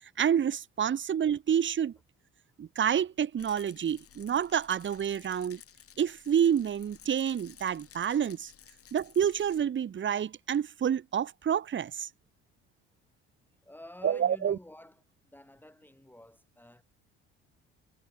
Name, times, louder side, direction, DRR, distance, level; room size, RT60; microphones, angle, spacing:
voice 1, 0.2-1.9 2.6-5.6 6.0-8.5 8.9-12.1 14.0-14.6, right 8 dB, 40° right, 1.3 m, -28 dB
Rattle, 3.4-9.6, left 9 dB, 45° left, 3.0 m, -55 dB
voice 2, 13.6-15.0 15.3-16.8, left 1 dB, 5° left, 4.2 m, -50 dB
hypercardioid pair, 70°, 31 cm